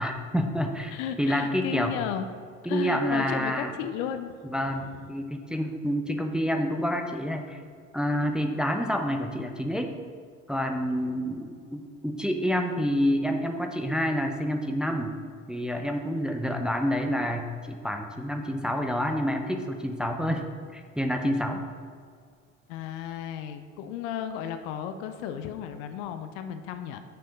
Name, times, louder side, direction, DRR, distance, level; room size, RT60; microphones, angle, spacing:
voice 1, 0.0-0.9 1.2-1.9 2.7-3.7 4.4-7.6 7.9-9.9 10.5-15.1 15.5-21.7, equal, ahead, 4 dB, 0.7 m, -28 dB
voice 2, 0.9-2.2 2.6-4.3 4.6-5.1 22.7-27.0, left 9 dB, 65° left, 9 dB, 0.7 m, -34 dB
6.8 x 6.4 x 5.2 m, 2.1 s
figure-of-eight pair, 55°, 40 cm